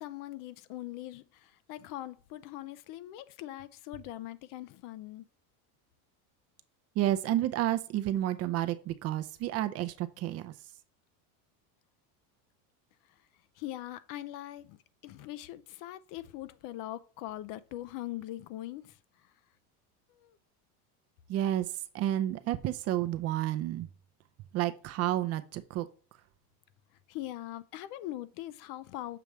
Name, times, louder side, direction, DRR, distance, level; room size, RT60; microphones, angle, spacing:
voice 1, 0.0-5.2 13.6-14.8 15.0-19.0 20.2-20.4 27.1-29.2, left 14 dB, 45° left, 0.5 m, -41 dB
voice 2, 7.0-10.5 21.3-21.7 21.9-23.9 24.5-25.9, right 13 dB, 35° right, 0.5 m, -30 dB
6.9 x 3.1 x 4.6 m
supercardioid pair, 145°, 45 cm